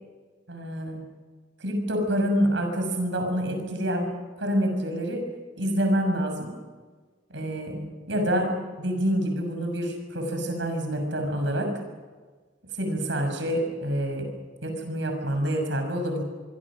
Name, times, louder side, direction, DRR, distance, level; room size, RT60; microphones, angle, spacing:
voice 1, 0.5-1.0 1.6-4.1 4.4-5.2 5.6-6.5 7.3-11.7 12.7-14.3 14.6-16.2, equal, 75° right, 5 dB, 6.4 m, -27 dB
24.5 x 24.5 x 6.2 m, 1.4 s
head